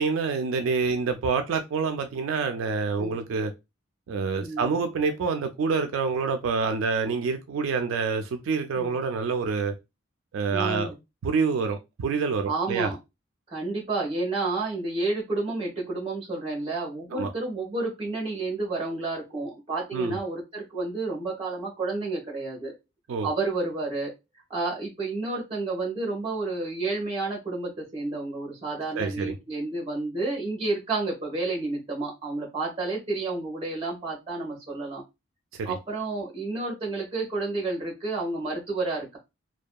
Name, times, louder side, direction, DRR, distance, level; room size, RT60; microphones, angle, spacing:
voice 1, 0.0-3.5 4.1-9.7 10.3-10.9 11.2-12.9 17.1-17.3 19.9-20.2 23.1-23.3 29.0-29.4 35.6-35.7, right 5 dB, 85° right, 0.3 m, -27 dB
voice 2, 4.4-4.7 8.8-9.0 10.5-10.9 12.4-13.0 13.5-22.7 23.2-24.1 24.5-35.0 35.6-39.2, right 3 dB, 30° right, 1.1 m, -30 dB
2.6 x 2.2 x 2.2 m
head